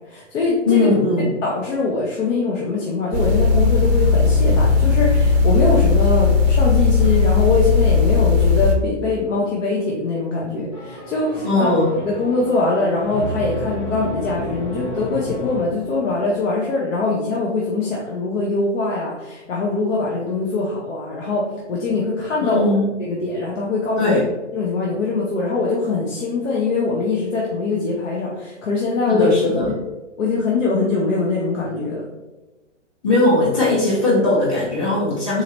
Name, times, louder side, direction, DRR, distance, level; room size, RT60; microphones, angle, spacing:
voice 1, 0.1-0.9 1.4-11.7 12.0-22.6 23.0-24.2 24.5-29.3 29.7-29.8 30.2-32.0, left 3 dB, 80° left, -4 dB, 1.0 m, -22 dB
voice 2, 0.7-1.3 11.4-11.9 22.4-22.9 24.0-24.2 29.1-29.7 33.0-35.4, left 2 dB, 35° left, -8 dB, 1.2 m, -18 dB
sound 1, 3.1-8.7, left 4 dB, 35° right, 0.5 m, -16 dB
sound 2, 10.7-16.3, left 1 dB, 15° left, 0.9 m, -32 dB
3.9 x 2.9 x 3.0 m, 1.1 s
hypercardioid pair, 145°, 37 cm